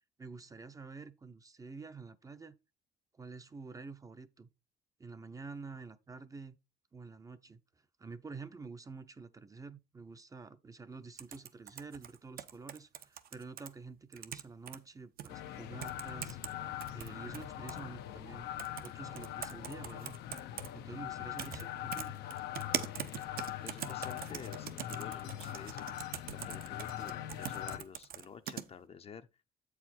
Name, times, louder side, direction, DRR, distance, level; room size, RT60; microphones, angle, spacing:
voice 1, 0.2-2.6 3.1-4.5 5.0-6.6 6.9-7.6 8.0-16.4 16.9-18.5 18.8-20.2 20.7-22.2, right 4 dB, 20° right, 0.6 m, -48 dB
sound 1, 11.2-13.7 14.1-14.8 15.2-15.3 15.8-16.5 16.8-17.8 18.6-18.9 19.2-20.7 21.4-21.6 21.9-28.6, right 10 dB, 60° right, 0.8 m, -41 dB
sound 2, 15.3-27.8, left 12 dB, 80° left, 0.6 m, -42 dB
voice 2, 23.6-25.9 26.3-29.3, left 7 dB, 35° left, 0.6 m, -50 dB
7.6 x 4.8 x 4.3 m
cardioid pair, 110°, 17 cm